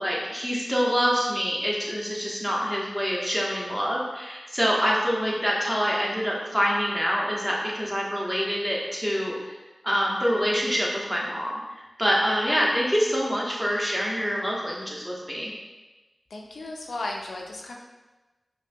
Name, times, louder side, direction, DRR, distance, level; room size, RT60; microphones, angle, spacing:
voice 1, 0.0-9.5 9.8-15.5, equal, 10° right, -4 dB, 1.1 m, -26 dB
voice 2, 16.3-17.8, left 2 dB, 90° left, 0 dB, 0.4 m, -35 dB
5.1 x 2.6 x 2.6 m, 1.2 s
cardioid pair, 45°, 0 cm